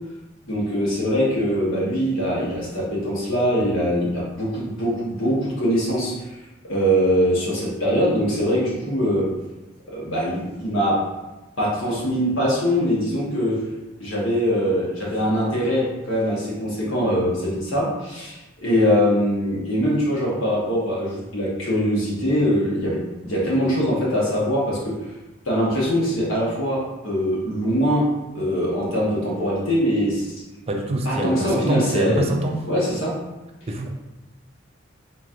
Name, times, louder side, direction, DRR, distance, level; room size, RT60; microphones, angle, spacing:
voice 1, 0.4-6.4 6.6-9.3 9.9-11.0 11.6-13.6 14.0-23.0 23.2-25.0 25.4-28.1 28.3-30.3 31.0-32.3 32.6-33.2, equal, 75° left, -5 dB, 1.2 m, -22 dB
voice 2, 30.7-32.7 33.7-33.9, right 1 dB, 30° right, 2 dB, 0.4 m, -25 dB
4.1 x 3.0 x 2.5 m, 1.1 s
head